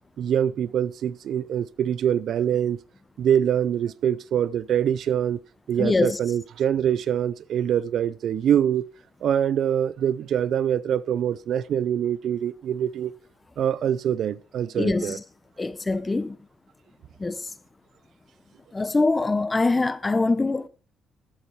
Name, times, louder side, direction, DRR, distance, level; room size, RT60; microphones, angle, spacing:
voice 1, 0.2-2.8 3.2-5.4 5.7-8.8 9.2-13.1 13.6-15.2, right 9 dB, 60° right, 0.5 m, -24 dB
voice 2, 5.8-6.2 14.8-15.1 15.6-16.4 17.2-17.4 18.7-20.7, left 3 dB, 15° left, 0.8 m, -23 dB
13.5 x 8.2 x 4.6 m
cardioid pair, 135°, 0 cm